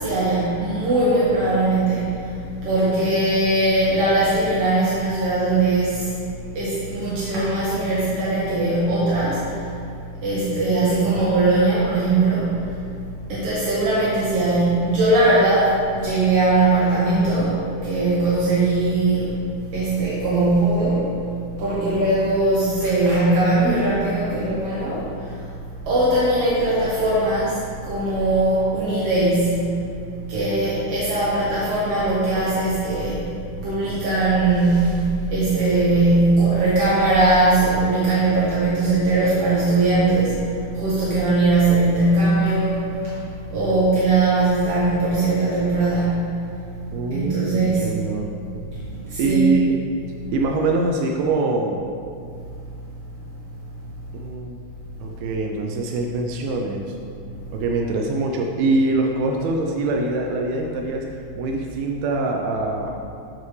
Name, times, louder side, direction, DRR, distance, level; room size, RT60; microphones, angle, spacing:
voice 1, 0.0-2.3 2.6-6.1 6.5-9.7 10.2-12.7 13.3-19.3 19.7-21.0 21.6-25.5 25.9-29.7 30.3-33.3 33.6-43.2 43.5-46.3 47.1-47.8 49.1-49.5, right 2 dB, 60° right, -9 dB, 1.7 m, -20 dB
voice 2, 46.9-48.3 49.2-49.8 50.3-51.8 54.1-54.6 55.0-57.0 57.5-61.1 61.4-62.9, right 2 dB, 80° right, 1 dB, 2.4 m, -23 dB
11.5 x 5.6 x 3.2 m, 2.3 s
omnidirectional pair, 4.5 m